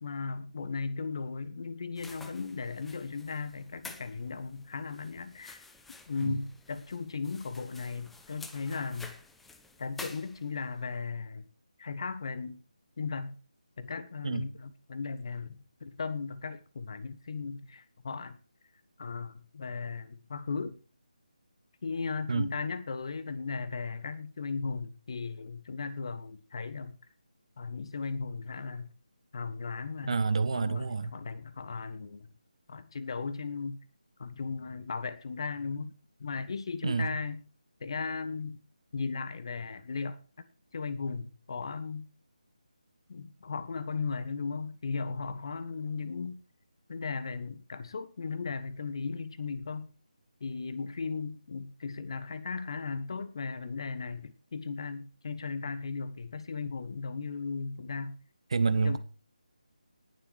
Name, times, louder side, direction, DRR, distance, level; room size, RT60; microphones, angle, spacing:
voice 1, 0.0-5.7 6.1-9.1 9.8-11.4 11.8-12.6 13.0-13.4 13.8-18.4 19.0-20.8 21.8-27.0 27.6-28.9 29.3-30.2 30.5-32.3 32.7-33.8 34.2-35.9 36.2-37.4 37.8-38.6 38.9-40.2 40.7-42.1 43.1-46.4 46.9-49.9 50.4-58.2 58.7-59.0, left 4 dB, 40° left, 1.2 m, -36 dB
sound 1, 2.0-10.8, left 3 dB, 5° left, 0.8 m, -50 dB
voice 2, 30.1-31.1 36.8-37.1 58.5-59.0, right 4 dB, 45° right, 1.2 m, -28 dB
19.0 x 7.4 x 4.7 m
figure-of-eight pair, 155°, 4 cm